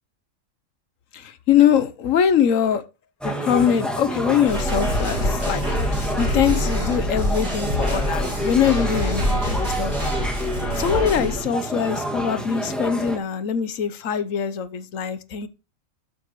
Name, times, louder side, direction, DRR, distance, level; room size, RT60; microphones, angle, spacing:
voice 1, 1.1-2.8 3.2-5.6 5.9-10.0 10.8-15.5, left 8 dB, 80° left, 1.3 m, -22 dB
sound 1, 3.2-13.2, equal, ahead, 2.0 m, -28 dB
sound 2, 4.5-11.4, equal, 35° right, 6.5 m, -25 dB
12.5 x 7.7 x 3.1 m
omnidirectional pair, 1.4 m